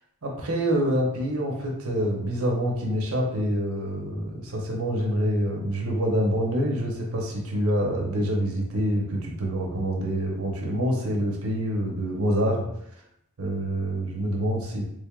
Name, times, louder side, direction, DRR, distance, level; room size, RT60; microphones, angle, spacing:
voice 1, 0.2-12.7 13.4-14.9, equal, 80° right, -1 dB, 0.8 m, -26 dB
3.8 x 3.3 x 2.3 m, 0.76 s
head